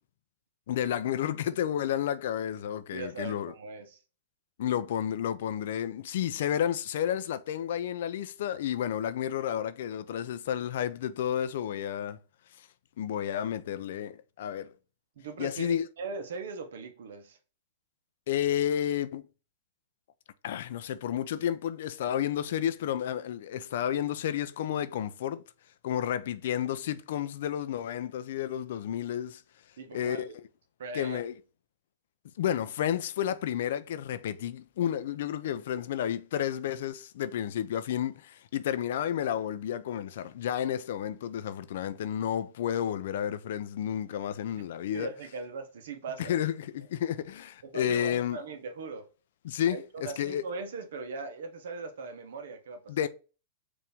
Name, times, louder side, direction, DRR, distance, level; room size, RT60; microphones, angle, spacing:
voice 1, 0.7-3.5 4.6-12.2 13.0-14.7 15.4-15.8 18.3-19.2 20.4-25.4 25.8-29.4 29.9-30.3 30.9-31.3 32.4-45.1 46.2-48.4 49.4-50.5 52.9-53.1, left 10 dB, 70° left, 0.4 m, -31 dB
voice 2, 2.9-4.0 15.2-17.4 29.8-30.4 30.8-31.2 44.9-46.3 47.6-49.1 49.7-53.1, right 4 dB, 75° right, 0.9 m, -40 dB
4.6 x 2.6 x 3.4 m
hypercardioid pair, 135°, 0 cm